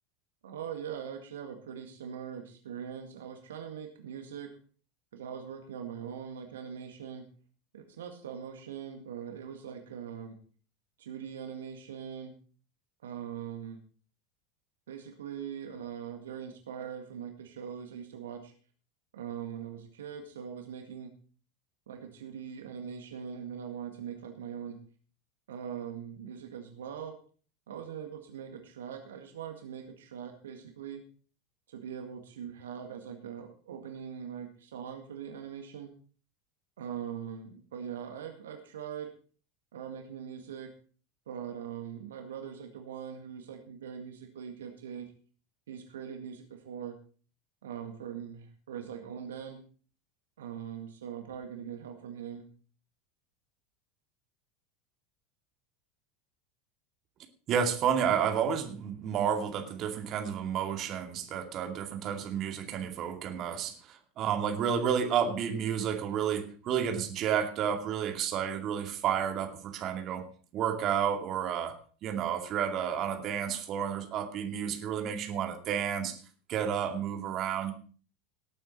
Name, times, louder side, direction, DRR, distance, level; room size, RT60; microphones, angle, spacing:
voice 1, 0.4-4.6 5.1-7.3 7.7-10.4 11.0-12.4 13.0-13.8 14.9-18.5 19.1-21.1 21.9-24.8 25.5-27.2 27.7-31.0 31.7-35.9 36.8-39.1 39.7-40.7 41.3-45.1 45.7-47.0 47.6-49.6 50.4-52.5, right 8 dB, 70° right, 5 dB, 1.9 m, -41 dB
voice 2, 57.5-70.3 70.5-71.8 72.0-76.2 76.5-77.7, right 8 dB, 40° right, 5 dB, 2.4 m, -31 dB
19.0 x 8.8 x 4.3 m, 0.40 s
figure-of-eight pair, 80°, 0 cm